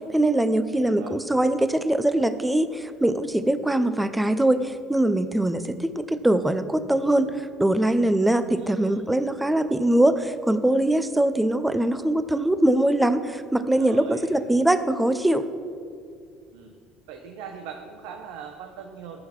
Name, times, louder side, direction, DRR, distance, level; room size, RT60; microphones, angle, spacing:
voice 1, 0.1-7.3 7.6-15.4, right 1 dB, 5° right, 11 dB, 0.6 m, -22 dB
voice 2, 0.7-1.2 8.6-9.1 13.7-14.3 16.5-16.7 17.1-19.2, right 7 dB, 90° right, 4 dB, 1.0 m, -41 dB
14.0 x 6.7 x 6.0 m, 2.2 s
cardioid pair, 130°, 0 cm